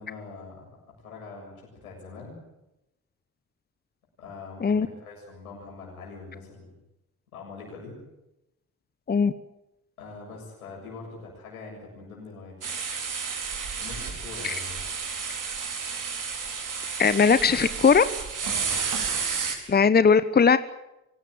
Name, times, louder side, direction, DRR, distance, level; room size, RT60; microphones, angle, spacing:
voice 1, 0.0-2.5 4.2-6.8 7.3-8.0 10.0-12.7 13.8-15.0 18.4-18.8, left 4 dB, 85° left, -1 dB, 7.5 m, -43 dB
sound 1, 12.6-19.5, right 5 dB, 50° right, 4.9 m, -31 dB
voice 2, 17.0-18.0 19.7-20.6, left 5 dB, 25° left, 14 dB, 1.1 m, -19 dB
25.0 x 17.5 x 9.4 m, 0.91 s
figure-of-eight pair, 45°, 42 cm